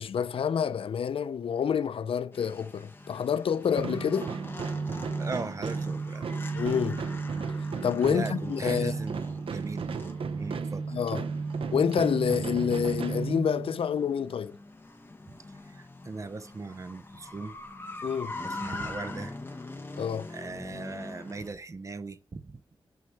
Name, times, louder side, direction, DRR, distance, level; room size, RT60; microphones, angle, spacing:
voice 1, 0.0-4.3 6.5-7.0 7.8-9.0 10.9-11.3 11.7-14.6 18.0-18.4 20.0-20.3, left 7 dB, 75° left, 0.4 m, -28 dB
sound 1, 2.3-21.5, left 2 dB, 25° left, 1.2 m, -44 dB
sound 2, 3.7-13.9, right 4 dB, 75° right, 0.7 m, -33 dB
voice 2, 5.2-6.3 8.1-9.9 10.3-11.0 15.3-17.6 18.4-19.4 20.3-22.6, right 3 dB, 35° right, 0.7 m, -39 dB
9.4 x 4.4 x 7.2 m
wide cardioid pair, 160°, 9 cm